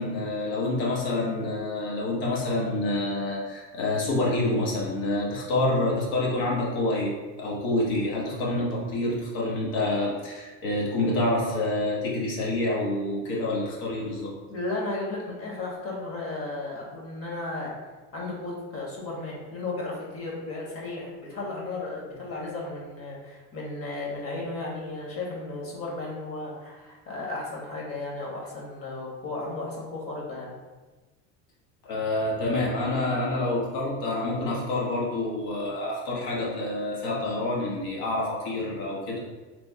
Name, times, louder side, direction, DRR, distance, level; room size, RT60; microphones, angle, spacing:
voice 1, 0.0-14.3 31.8-39.2, left 2 dB, 75° left, -4 dB, 1.2 m, -27 dB
voice 2, 14.5-17.7 18.1-30.5 33.1-33.2, left 2 dB, 40° left, -2 dB, 1.2 m, -34 dB
3.3 x 2.0 x 4.1 m, 1.2 s
supercardioid pair, 95°, 37 cm